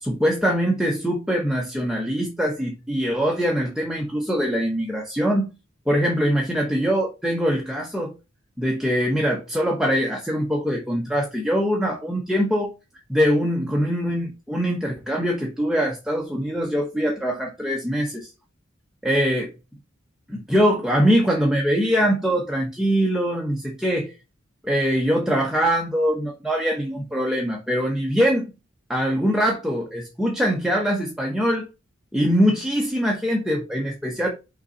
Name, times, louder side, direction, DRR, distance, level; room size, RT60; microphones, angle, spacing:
voice 1, 0.0-5.5 5.9-8.1 8.6-12.7 13.1-18.3 19.0-19.5 20.3-24.1 24.6-28.5 28.9-31.7 32.1-34.3, equal, 5° right, 1.0 m, -23 dB
6.0 x 3.9 x 4.0 m
head